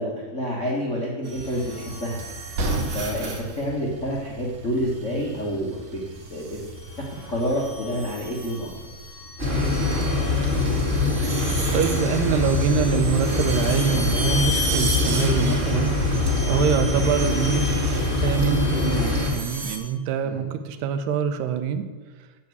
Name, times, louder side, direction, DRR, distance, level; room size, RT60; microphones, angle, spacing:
voice 1, 0.0-2.2 2.9-6.0 6.3-6.6 7.3-8.7 16.8-17.2 20.2-20.4, equal, 70° left, -4 dB, 0.7 m, -28 dB
sound 1, 1.2-3.6 5.0-5.4 6.2-19.8, right 1 dB, 50° right, 2.4 m, -34 dB
Train, 1.3-9.9, right 1 dB, 70° right, 1.5 m, -36 dB
sound 2, 9.4-19.3, left 2 dB, 20° right, 1.4 m, -23 dB
voice 2, 11.2-21.9, right 7 dB, 90° right, 10 dB, 2.9 m, -25 dB
8.5 x 7.3 x 7.9 m, 1.3 s
omnidirectional pair, 4.6 m